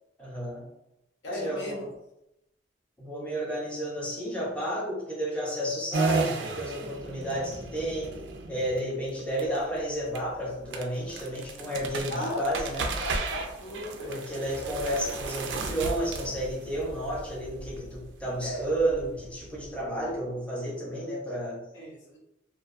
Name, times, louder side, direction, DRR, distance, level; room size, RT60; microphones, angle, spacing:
voice 1, 0.2-0.6 1.3-1.9 3.0-8.1 8.5-12.9 14.1-21.6, right 1 dB, 5° left, -5 dB, 0.7 m, -31 dB
voice 2, 1.2-1.9 12.1-14.2 18.4-18.7 21.7-22.2, left 1 dB, 75° left, -3 dB, 0.8 m, -37 dB
sound 1, 5.9-20.1, right 4 dB, 70° right, 0.4 m, -35 dB
2.5 x 2.2 x 2.5 m, 0.86 s
head